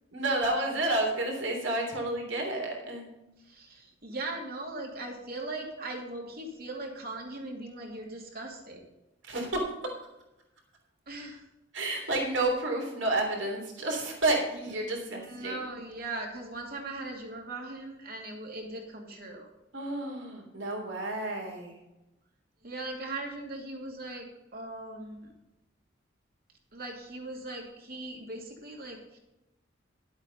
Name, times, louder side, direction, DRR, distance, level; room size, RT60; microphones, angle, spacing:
voice 1, 0.1-3.1 9.2-9.6 11.7-15.6 19.7-21.8, right 2 dB, 75° right, 1 dB, 3.2 m, -30 dB
voice 2, 3.4-8.8 11.1-11.4 14.5-19.5 22.6-24.3 24.5-25.3 26.7-29.2, right 2 dB, 50° right, 1 dB, 2.6 m, -39 dB
12.0 x 8.0 x 5.4 m, 0.95 s
head